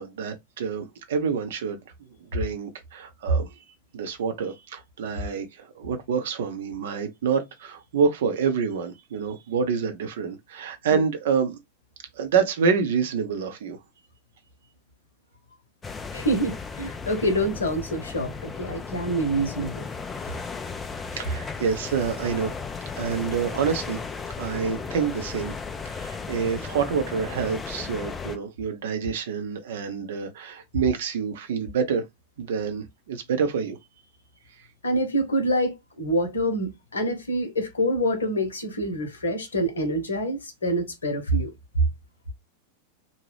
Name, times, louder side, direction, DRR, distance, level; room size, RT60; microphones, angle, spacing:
voice 1, 0.0-1.8 2.3-3.6 3.9-11.6 12.2-13.8 21.1-22.5 22.9-24.0 24.4-25.5 25.9-32.0 32.4-33.8, right 6 dB, 60° right, 0.6 m, -27 dB
sound 1, 15.8-28.4, left 5 dB, 15° left, 0.4 m, -35 dB
voice 2, 16.1-19.9 34.8-41.5, right 1 dB, 70° left, 0.9 m, -26 dB
2.7 x 2.2 x 3.2 m
figure-of-eight pair, 90°, 0 cm